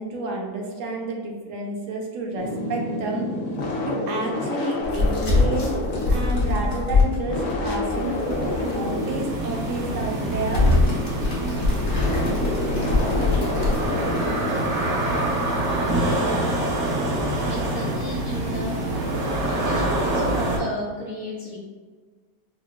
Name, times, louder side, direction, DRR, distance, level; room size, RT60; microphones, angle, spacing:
voice 1, 0.0-3.2 3.9-5.8 6.1-10.7, right 2 dB, 65° right, 0 dB, 0.8 m, -30 dB
sound 1, 2.4-17.3, left 2 dB, 80° left, 0.6 m, -30 dB
sound 2, 4.8-8.7 9.1-9.2 9.7-10.0 10.4-14.8, left 2 dB, 65° left, 1.4 m, -24 dB
sound 3, 7.9-20.6, right 1 dB, 85° right, 1.6 m, -26 dB
voice 2, 17.5-18.8 19.5-21.6, left 1 dB, 30° right, -9 dB, 1.0 m, -33 dB
5.5 x 2.3 x 2.2 m, 1.4 s
omnidirectional pair, 1.8 m